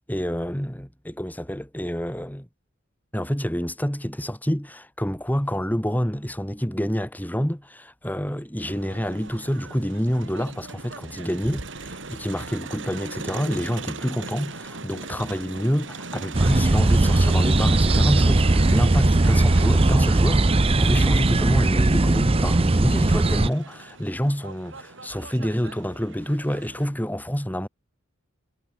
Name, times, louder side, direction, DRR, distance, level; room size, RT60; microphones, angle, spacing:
voice 1, 0.1-2.5 3.1-27.7, equal, 10° left, 5.8 m, -27 dB
Crowd, 8.6-26.8, right 3 dB, 65° right, 2.9 m, -39 dB
sound 1, 16.3-23.5, right 2 dB, 30° right, 0.7 m, -19 dB
head